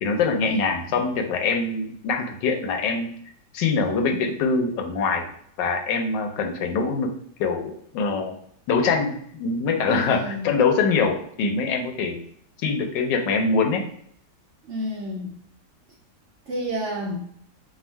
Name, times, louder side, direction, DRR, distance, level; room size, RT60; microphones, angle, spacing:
voice 1, 0.0-3.1 3.5-5.3 5.6-7.1 7.4-8.3 8.7-12.2 12.6-13.8, left 4 dB, 90° left, 4 dB, 1.3 m, -24 dB
voice 2, 9.9-10.5 14.7-15.4 16.5-17.2, equal, 70° right, 0 dB, 0.7 m, -30 dB
3.5 x 2.3 x 4.4 m, 0.65 s
omnidirectional pair, 1.9 m